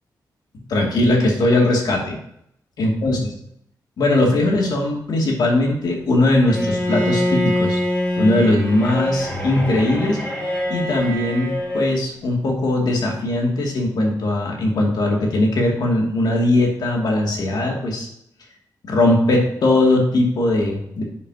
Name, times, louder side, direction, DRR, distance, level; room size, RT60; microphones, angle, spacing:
voice 1, 0.7-2.2 2.8-3.2 4.0-7.8 8.2-10.2 10.7-18.1 18.8-21.0, left 1 dB, 70° left, 0 dB, 2.4 m, -19 dB
Bowed string instrument, 6.4-12.0, left 1 dB, 20° left, 2.9 m, -24 dB
10.0 x 7.3 x 2.9 m, 0.74 s
wide cardioid pair, 160°, 7 cm